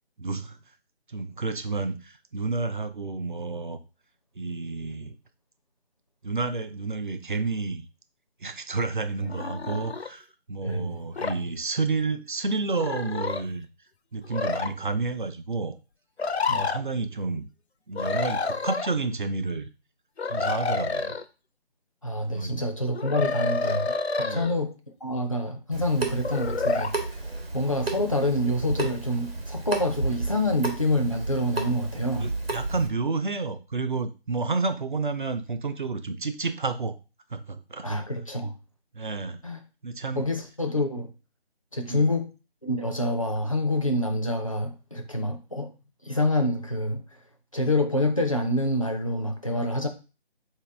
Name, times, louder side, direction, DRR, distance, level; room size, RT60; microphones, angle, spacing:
voice 1, 0.2-0.6 1.1-3.8 4.4-5.2 6.2-7.9 8.4-13.7 14.1-15.8 16.5-17.5 17.9-19.7 20.2-21.2 22.3-22.6 24.2-24.5 32.2-37.0 37.3-37.9 38.9-39.4 39.8-40.3 41.9-42.1, right 3 dB, 50° right, 0.5 m, -30 dB
sound 1, 9.3-10.1 11.2-11.4 12.7-13.4 14.2-14.7 16.2-16.8 17.9-18.9 20.2-21.2 22.9-24.5 26.2-26.9, left 4 dB, 90° left, 0.5 m, -28 dB
voice 2, 10.6-11.0 16.5-16.7 22.0-24.7 25.0-27.2 27.5-32.3 37.8-38.5 39.4-39.6 40.2-41.1 41.7-42.3 42.6-45.7 46.0-47.0 47.5-49.9, left 1 dB, 35° left, 0.4 m, -27 dB
Water tap faucet / Sink (filling or washing) / Drip, 25.7-32.9, right 3 dB, 70° right, 1.1 m, -32 dB
4.1 x 2.8 x 3.3 m
figure-of-eight pair, 160°, 32 cm